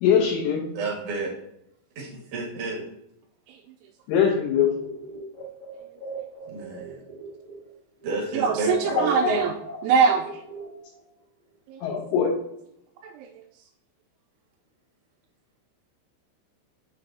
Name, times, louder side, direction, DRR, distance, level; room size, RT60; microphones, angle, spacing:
voice 1, 0.0-0.7 4.1-4.7 8.9-9.3 11.8-12.3, left 7 dB, 75° left, -4 dB, 3.4 m, -22 dB
voice 2, 0.7-1.3 2.0-2.9 6.5-7.0 8.0-9.5, right 2 dB, 55° right, -2 dB, 2.3 m, -30 dB
sound 1, 4.5-7.7 8.0-11.0, right 2 dB, 20° right, 1.2 m, -40 dB
voice 3, 8.3-9.5 9.8-10.2 11.7-11.8 13.0-13.3, right 6 dB, 85° right, 2 dB, 2.8 m, -22 dB
6.9 x 6.5 x 2.7 m, 0.79 s
omnidirectional pair, 5.9 m